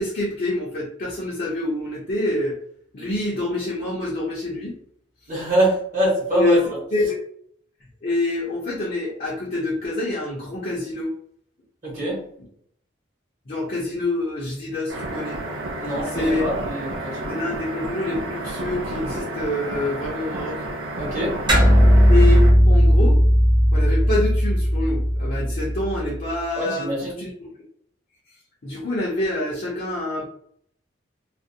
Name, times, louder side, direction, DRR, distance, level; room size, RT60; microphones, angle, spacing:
voice 1, 0.0-2.6 2.9-4.8 6.3-6.6 6.9-7.2 8.0-11.1 12.4-12.5 13.5-15.4 16.0-16.5 17.3-20.6 22.1-23.2 23.7-27.5 28.6-30.3, left 2 dB, 45° left, -5 dB, 0.5 m, -26 dB
voice 2, 5.3-6.6 11.8-12.2 15.8-17.4 21.0-21.3 26.6-27.1, right 1 dB, 45° right, -6 dB, 1.0 m, -24 dB
sound 1, 14.9-22.5, right 2 dB, 75° right, 0.5 m, -31 dB
sound 2, 21.5-26.2, equal, 25° right, 0.7 m, -16 dB
2.4 x 2.0 x 2.6 m, 0.66 s
head